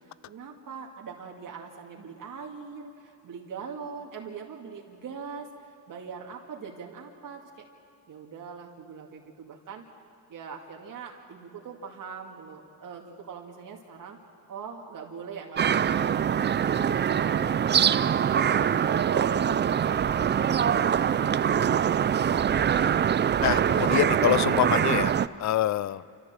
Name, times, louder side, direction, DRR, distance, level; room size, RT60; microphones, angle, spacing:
voice 1, 0.3-7.6 8.1-9.8 10.3-14.2 14.5-22.8, right 6 dB, 55° right, 0 dB, 2.2 m, -42 dB
sound 1, 15.6-25.3, right 8 dB, 30° right, 0.4 m, -24 dB
voice 2, 23.4-25.1 25.4-26.0, left 12 dB, 45° left, 19 dB, 0.6 m, -25 dB
28.5 x 14.5 x 7.6 m, 2.8 s
cardioid pair, 105°, 39 cm